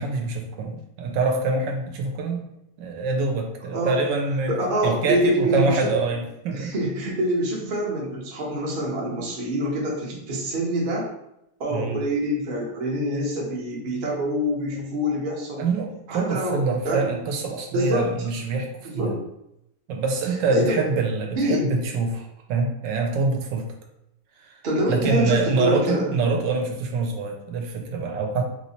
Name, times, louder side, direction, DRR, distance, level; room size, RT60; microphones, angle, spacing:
voice 1, 0.0-2.4 2.8-6.7 11.7-12.0 15.6-18.7 18.9-19.1 19.9-23.7 24.5-24.6 24.9-28.4, right 3 dB, 75° right, 2 dB, 1.2 m, -25 dB
voice 2, 3.7-4.1 4.5-5.9 6.5-11.1 11.6-15.7 16.1-17.1 17.7-18.1 18.8-19.2 20.5-20.8 21.3-21.8 24.6-26.1, equal, 50° right, -3 dB, 0.6 m, -25 dB
3.1 x 3.0 x 2.8 m, 0.82 s
omnidirectional pair, 2.0 m